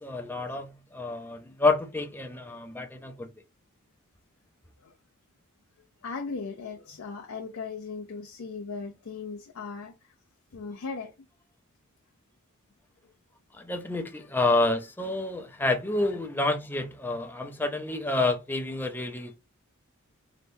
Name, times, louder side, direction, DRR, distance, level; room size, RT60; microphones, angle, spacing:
voice 1, 0.0-3.3 13.5-19.3, left 2 dB, 10° left, 0.5 m, -28 dB
voice 2, 6.0-10.1 10.5-11.1, left 4 dB, 70° left, 0.5 m, -38 dB
3.3 x 2.8 x 2.6 m
head